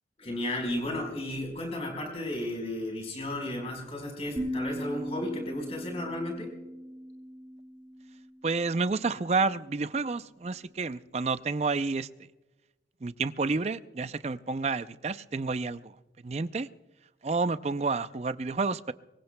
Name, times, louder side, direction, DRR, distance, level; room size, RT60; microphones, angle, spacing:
voice 1, 0.2-6.5, left 1 dB, 35° left, 1 dB, 4.4 m, -34 dB
sound 1, 4.4-9.5, equal, 10° right, 5.8 m, -39 dB
voice 2, 8.4-12.1 13.0-15.9 16.2-16.7 17.2-18.9, right 4 dB, 35° right, 13 dB, 0.4 m, -30 dB
23.5 x 20.5 x 2.2 m, 1.1 s
head